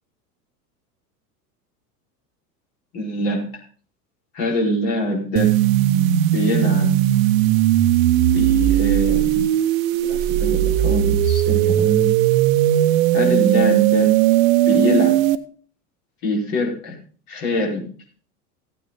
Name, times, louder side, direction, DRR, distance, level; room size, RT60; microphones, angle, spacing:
voice 1, 2.9-3.5 4.3-5.6 6.3-7.0 8.3-9.5 10.0-12.1 13.1-14.1 14.6-15.2 16.2-17.0 17.3-17.9, left 1 dB, 55° left, -1 dB, 4.9 m, -24 dB
sound 1, 5.4-15.4, right 13 dB, 55° right, 0.9 m, -17 dB
15.5 x 9.2 x 4.0 m, 0.43 s
figure-of-eight pair, 80°, 48 cm